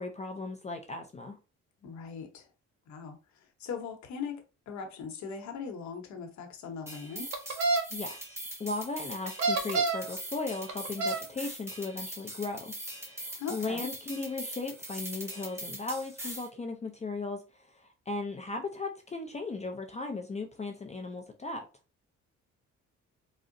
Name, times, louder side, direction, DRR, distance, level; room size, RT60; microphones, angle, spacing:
voice 1, 0.0-1.4 7.9-21.7, left 3 dB, 25° left, 0.4 m, -37 dB
voice 2, 1.8-2.5 2.9-7.3 13.4-13.9, left 6 dB, 65° left, 0.9 m, -40 dB
sound 1, 6.9-16.5, right 1 dB, 10° right, 1.0 m, -42 dB
sound 2, 7.3-7.8 9.3-10.1 10.7-11.2, right 3 dB, 65° right, 0.8 m, -27 dB
3.7 x 2.0 x 2.6 m
cardioid pair, 90°, 30 cm